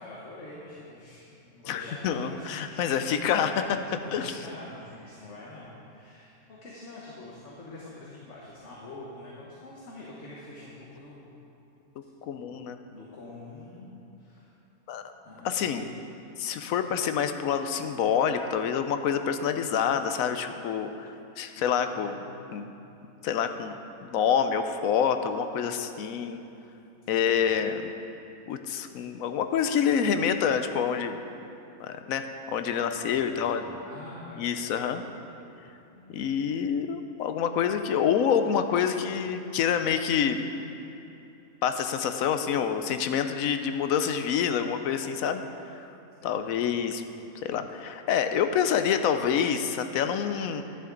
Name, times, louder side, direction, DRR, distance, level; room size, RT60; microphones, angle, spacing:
voice 1, 0.0-11.3 12.3-12.4 12.9-13.9 14.2-14.5 15.2-16.0 21.6-23.0 27.0-27.7 32.9-34.8 35.9-36.2 46.2-46.7, left 2 dB, 50° left, -5 dB, 1.5 m, -46 dB
voice 2, 1.7-3.8 4.1-4.4 12.2-12.8 14.9-15.0 15.4-15.8 16.4-22.2 22.5-22.7 23.2-26.4 27.1-27.9 28.5-31.2 31.8-32.2 32.5-33.6 34.4-35.0 36.1-40.4 41.6-45.9 46.2-47.0 47.4-50.6, left 7 dB, 70° left, 8 dB, 1.0 m, -27 dB
11.0 x 10.5 x 3.9 m, 2.8 s
omnidirectional pair, 1.6 m